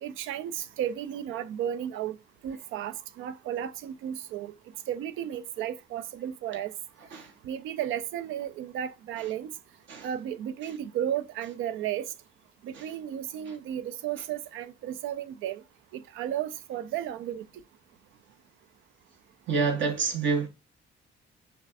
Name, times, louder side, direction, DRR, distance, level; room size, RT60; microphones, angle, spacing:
voice 1, 0.0-2.2 2.4-4.5 4.9-6.7 7.4-9.5 10.0-12.1 12.6-15.6 15.9-17.4, right 10 dB, 90° right, 0.4 m, -34 dB
voice 2, 19.5-20.5, right 5 dB, 70° right, 1.1 m, -27 dB
5.6 x 2.4 x 2.5 m
cardioid pair, 90°, 20 cm